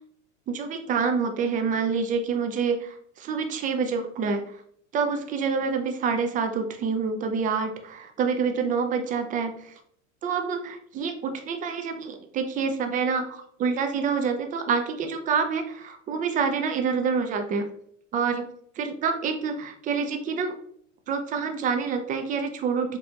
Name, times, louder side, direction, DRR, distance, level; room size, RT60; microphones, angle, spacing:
voice 1, 0.5-4.5 4.9-9.7 10.2-17.7 18.1-18.4 18.8-20.5 21.1-23.0, right 5 dB, 20° right, 6 dB, 0.4 m, -27 dB
4.2 x 2.8 x 2.3 m, 0.66 s
hypercardioid pair, 110°, 39 cm